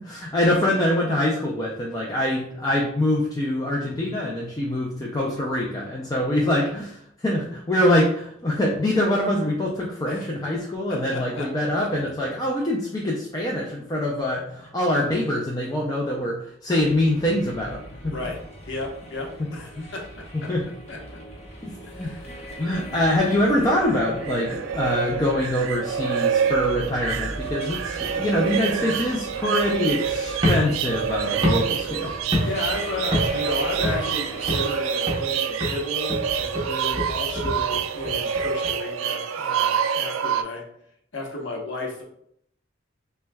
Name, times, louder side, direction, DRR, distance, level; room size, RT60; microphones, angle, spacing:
voice 1, 0.0-18.1 19.8-19.9 20.3-20.7 21.6-22.1 22.6-32.1, left 1 dB, 20° left, -3 dB, 0.4 m, -24 dB
voice 2, 10.9-11.5 18.0-18.4 18.6-20.1 20.4-20.5 20.9-21.0 21.8-22.6 32.4-40.6 41.1-42.0, left 2 dB, 65° left, -1 dB, 0.9 m, -33 dB
sound 1, 16.8-34.8, right 1 dB, 35° left, 0.9 m, -40 dB
sound 2, 23.5-40.4, right 7 dB, 90° right, 0.3 m, -27 dB
sound 3, 30.3-32.8 33.1-33.5 33.8-34.8 35.1-35.4 35.6-38.7, left 1 dB, 25° right, 0.8 m, -27 dB
5.8 x 2.2 x 2.2 m, 0.71 s
head